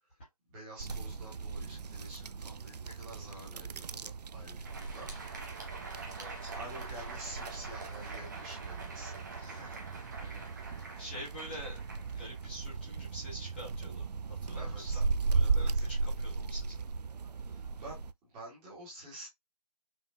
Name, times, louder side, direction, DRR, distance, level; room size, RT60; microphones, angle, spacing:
voice 1, 0.5-5.1 6.1-9.2 14.5-15.0 15.4-15.9 17.5-19.3, right 1 dB, 10° right, 1.2 m, -49 dB
sound 1, 0.8-18.1, right 4 dB, 80° right, 0.4 m, -37 dB
Crowd, 4.5-12.9, right 3 dB, 30° right, 1.0 m, -46 dB
voice 2, 6.2-6.5 9.4-10.5 11.0-11.9 12.1-15.0 15.3-16.9 17.3-17.7, equal, 15° left, 1.0 m, -47 dB
5.4 x 2.4 x 2.4 m
figure-of-eight pair, 170°, 20 cm